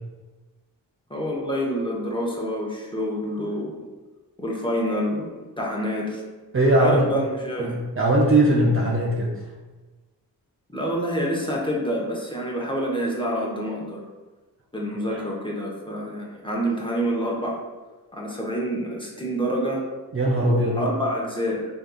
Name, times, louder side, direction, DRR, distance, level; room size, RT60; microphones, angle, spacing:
voice 1, 1.1-3.8 4.4-5.2 5.6-6.2 6.7-7.8 10.7-14.0 14.7-17.5 18.1-19.8 20.5-21.7, equal, 10° left, -3 dB, 0.7 m, -27 dB
voice 2, 6.5-7.0 7.6-9.4 20.1-20.8, right 1 dB, 30° right, -3 dB, 0.5 m, -20 dB
3.4 x 2.4 x 2.3 m, 1.3 s
supercardioid pair, 45°, 45 cm